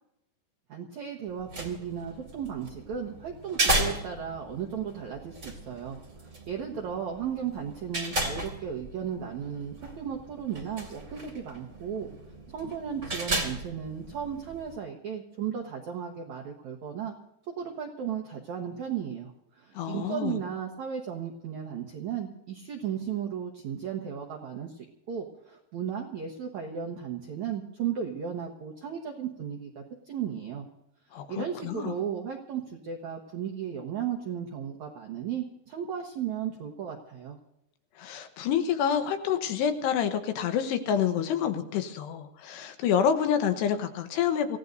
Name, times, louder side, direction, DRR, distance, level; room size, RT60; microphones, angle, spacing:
voice 1, 0.7-12.1 12.5-17.1 17.5-30.7 31.3-37.4, right 8 dB, 70° right, 1 dB, 1.7 m, -35 dB
sound 1, 1.3-14.7, right 1 dB, 30° right, 1.8 m, -35 dB
voice 2, 19.7-20.4 31.1-31.9 38.0-44.6, left 8 dB, 75° left, 7 dB, 3.1 m, -28 dB
27.5 x 16.0 x 2.7 m, 0.79 s
omnidirectional pair, 5.1 m